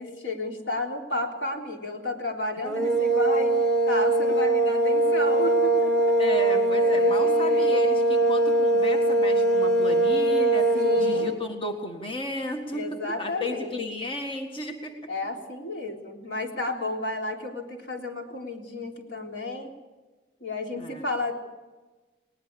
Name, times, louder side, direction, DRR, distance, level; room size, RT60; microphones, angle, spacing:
voice 1, 0.0-3.6 3.9-6.2 6.7-7.9 10.7-11.3 12.7-13.8 15.1-19.7 20.4-21.3, left 2 dB, 80° left, 1 dB, 3.7 m, -32 dB
sound 1, 2.6-11.4, right 2 dB, 5° left, 2.3 m, -22 dB
voice 2, 6.2-15.0 20.8-21.0, left 1 dB, 30° left, 3 dB, 1.6 m, -34 dB
20.5 x 19.5 x 6.9 m, 1.2 s
head